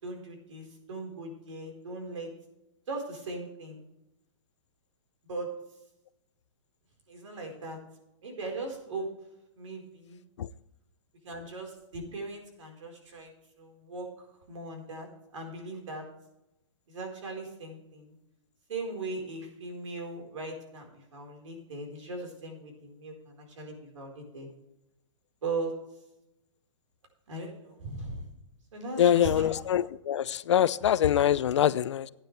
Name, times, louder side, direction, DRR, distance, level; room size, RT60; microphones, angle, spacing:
voice 1, 0.0-2.3 2.9-3.8 5.2-5.6 7.1-7.8 8.2-9.1 9.6-10.2 11.2-13.3 13.6-15.1 15.3-16.1 16.9-18.1 18.7-24.5 25.4-25.8 27.3-28.2 28.7-29.5, right 2 dB, 75° right, 4.5 m, -38 dB
voice 2, 29.0-32.1, left 10 dB, 65° left, 0.5 m, -24 dB
15.5 x 9.7 x 3.3 m
hypercardioid pair, 165°, 16 cm